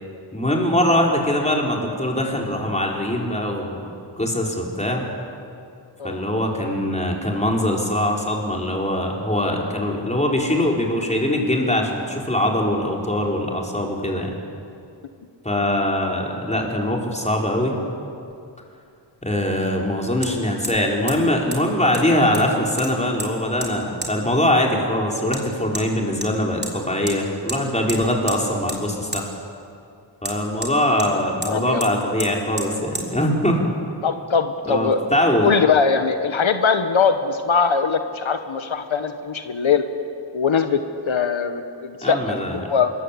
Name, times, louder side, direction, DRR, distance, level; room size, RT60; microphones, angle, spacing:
voice 1, 0.3-5.1 6.0-14.4 15.4-17.8 19.2-29.3 30.2-33.6 34.7-35.5 42.0-42.6, left 1 dB, 15° left, 0 dB, 4.5 m, -22 dB
Hammer, 18.3-18.4 20.2-20.3 20.6-20.8 21.1-21.2 21.5-21.6 21.9-22.5 22.8-23.3 23.6-23.7 24.0-24.1 25.3-25.4 25.8-25.9 26.2-26.7 27.1-27.2 27.5-27.6 27.9-28.4 28.7-28.8 29.1-29.3 30.2-31.1 31.4-31.5 31.8-31.9 32.2-32.3 32.6-32.7 33.0-33.1, right 2 dB, 20° right, 3.8 m, -31 dB
voice 2, 31.4-31.8 34.0-35.0 35.4-39.8 40.3-42.9, left 5 dB, 85° left, 8 dB, 1.3 m, -21 dB
25.5 x 22.5 x 8.5 m, 2.5 s
wide cardioid pair, 90°, 46 cm